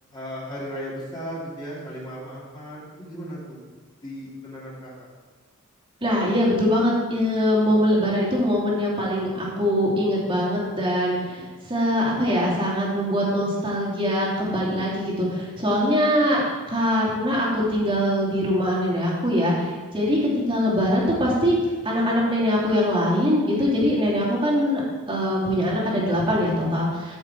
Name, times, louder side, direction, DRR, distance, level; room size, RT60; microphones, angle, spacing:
voice 1, 0.1-3.6 4.0-5.1, equal, 20° left, -8 dB, 3.5 m, -36 dB
voice 2, 6.0-16.4 16.7-20.2 20.5-21.6 21.8-24.8 25.1-27.2, equal, 25° right, -5 dB, 3.1 m, -22 dB
14.0 x 6.5 x 4.6 m, 1.4 s
head